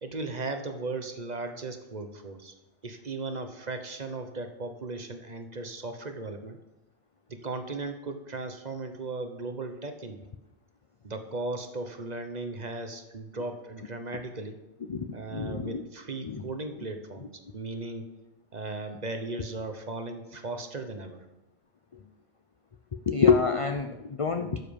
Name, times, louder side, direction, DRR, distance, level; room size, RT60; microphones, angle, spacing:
voice 1, 0.0-2.5 2.8-6.6 7.3-10.2 11.0-14.6 15.1-18.1 18.5-21.2, right 3 dB, 35° right, 7 dB, 1.0 m, -37 dB
voice 2, 14.9-15.8 16.2-16.4 23.1-24.6, left 5 dB, 55° left, 7 dB, 0.3 m, -26 dB
12.0 x 7.4 x 5.2 m, 0.96 s
omnidirectional pair, 1.3 m